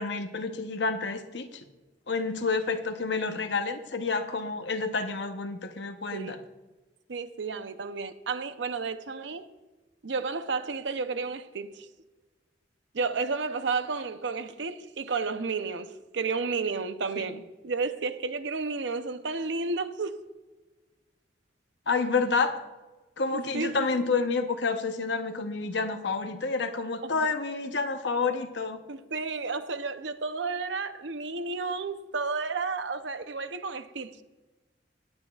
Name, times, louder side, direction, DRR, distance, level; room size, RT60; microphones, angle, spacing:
voice 1, 0.0-1.6 2.1-6.4 17.2-17.3 21.9-22.6 23.2-28.8, left 4 dB, 70° left, 0.9 m, -29 dB
voice 2, 7.1-9.4 10.0-11.9 12.9-20.3 23.3-23.9 27.0-27.3 28.9-34.2, right 4 dB, 75° right, 0.7 m, -32 dB
19.5 x 8.8 x 2.4 m
head